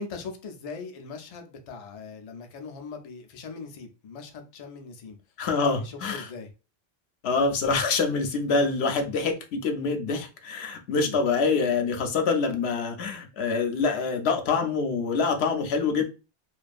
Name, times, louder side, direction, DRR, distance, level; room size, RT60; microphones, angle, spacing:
voice 1, 0.0-5.2 5.5-6.5 11.0-11.2, left 4 dB, 55° left, 4 dB, 0.4 m, -40 dB
voice 2, 5.4-6.3 7.2-16.1, left 4 dB, 80° left, 5 dB, 0.8 m, -25 dB
2.5 x 2.3 x 2.3 m, 0.31 s
omnidirectional pair, 1.1 m